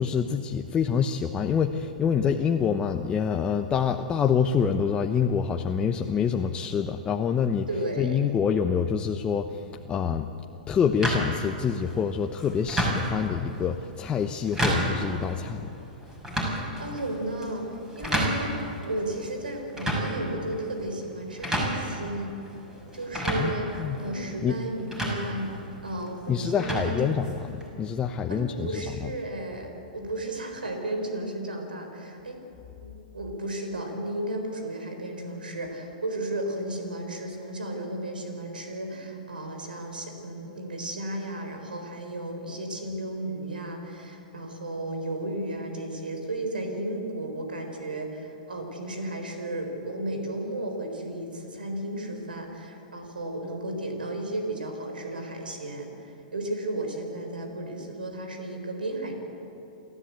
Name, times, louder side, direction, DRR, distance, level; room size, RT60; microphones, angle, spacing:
voice 1, 0.0-10.3 10.7-15.6 23.4-24.0 24.4-24.6 26.3-27.5 27.8-29.1, left 7 dB, 20° left, 5 dB, 0.9 m, -26 dB
voice 2, 7.7-8.3 16.8-22.3 22.9-25.5 25.8-27.1 28.3-32.4 32.7-59.2, right 1 dB, 90° right, 4 dB, 4.2 m, -34 dB
sound 1, 11.0-27.7, equal, 10° right, 6.1 m, -32 dB
29.0 x 13.5 x 8.3 m, 2.8 s
hypercardioid pair, 115°, 5 cm